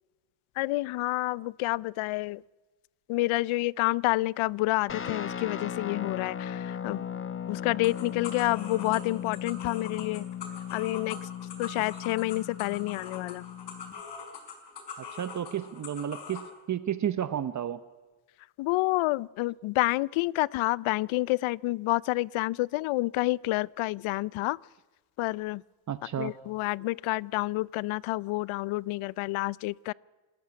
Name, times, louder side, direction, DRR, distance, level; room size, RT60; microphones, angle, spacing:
voice 1, 0.6-2.4 3.1-7.0 7.5-10.2 10.7-11.2 11.6-13.4 18.6-24.6 25.2-25.6 26.2-29.9, left 19 dB, 80° left, 0.6 m, -29 dB
Guitar, 4.9-14.0, left 8 dB, 25° left, 1.0 m, -37 dB
sound 1, 7.8-16.5, left 6 dB, 55° left, 5.1 m, -43 dB
voice 2, 15.0-17.8 25.9-26.3, right 10 dB, 35° right, 0.9 m, -32 dB
25.5 x 14.0 x 9.6 m
cardioid pair, 120°, 48 cm